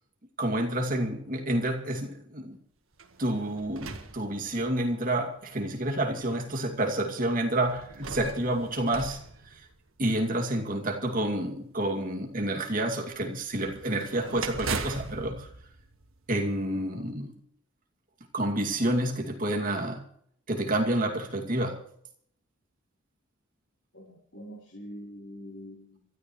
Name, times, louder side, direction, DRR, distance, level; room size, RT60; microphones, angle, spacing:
voice 1, 0.4-2.6 3.2-9.2 10.0-15.5 16.3-17.3 18.3-20.0 20.5-21.8, right 1 dB, 40° right, 2.4 m, -29 dB
sound 1, 2.9-4.9 5.7-5.8 7.7-10.2 13.6-16.7, right 4 dB, 85° right, 1.6 m, -39 dB
voice 2, 16.7-17.1 23.9-26.1, equal, 60° left, 3.7 m, -45 dB
27.0 x 13.5 x 3.2 m
head